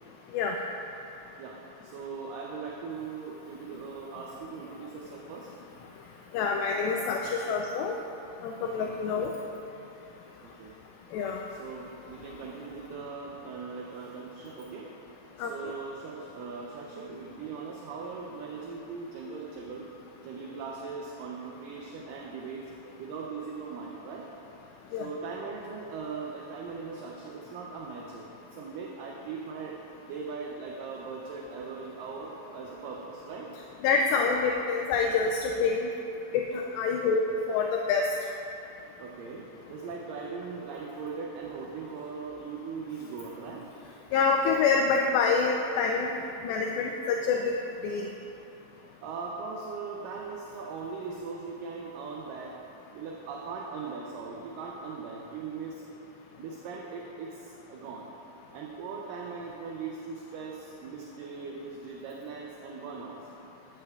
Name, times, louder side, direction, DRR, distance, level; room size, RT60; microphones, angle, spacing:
voice 1, 1.4-5.5 8.8-9.0 10.4-10.7 11.6-14.9 15.4-19.9 20.2-24.3 25.0-28.2 28.5-29.8 30.1-33.5 36.9-37.0 39.0-43.7 48.8-52.6 52.9-55.8 56.4-58.1 58.5-63.2, right 5 dB, 80° right, -1 dB, 2.0 m, -40 dB
voice 2, 6.3-7.9 8.4-9.3 11.1-11.4 15.4-15.7 24.9-25.1 33.8-35.9 36.3-38.1 44.1-47.5 47.8-48.1, left 5 dB, 80° left, 1 dB, 2.3 m, -27 dB
13.5 x 8.9 x 2.3 m, 2.9 s
omnidirectional pair, 4.4 m